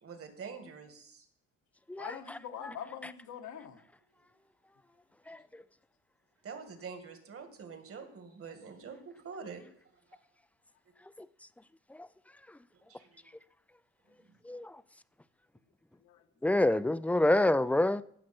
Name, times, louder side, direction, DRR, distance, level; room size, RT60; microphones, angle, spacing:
voice 1, 0.0-1.2 6.4-9.7 12.9-13.3, right 5 dB, 50° right, 2.1 m, -46 dB
voice 2, 2.0-3.8 16.0-16.6, left 8 dB, 75° left, 1.4 m, -44 dB
voice 3, 16.4-18.0, left 1 dB, 5° left, 0.4 m, -26 dB
15.5 x 6.4 x 4.4 m
cardioid pair, 90°, 30 cm